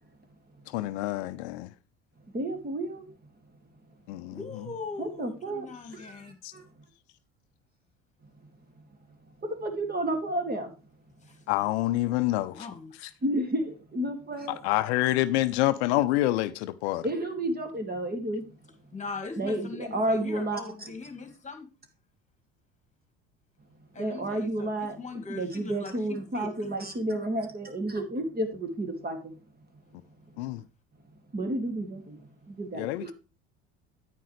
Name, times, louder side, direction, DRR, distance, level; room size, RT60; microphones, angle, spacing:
voice 1, 0.7-1.7 4.1-4.7 6.4-6.5 11.5-12.7 13.0-13.1 14.5-17.1 30.4-30.6 32.8-33.1, left 16 dB, 70° left, 0.6 m, -27 dB
voice 2, 2.3-3.0 5.0-5.7 5.9-6.7 9.4-10.7 13.2-14.6 17.0-18.4 19.4-20.9 24.0-25.0 25.3-29.3 31.3-33.1, right 1 dB, 25° right, 2.3 m, -31 dB
voice 3, 4.3-6.4 11.2-11.4 12.5-12.9 18.9-21.7 23.9-26.7, left 4 dB, 20° left, 2.1 m, -40 dB
9.3 x 9.2 x 3.2 m
hypercardioid pair, 65°, 35 cm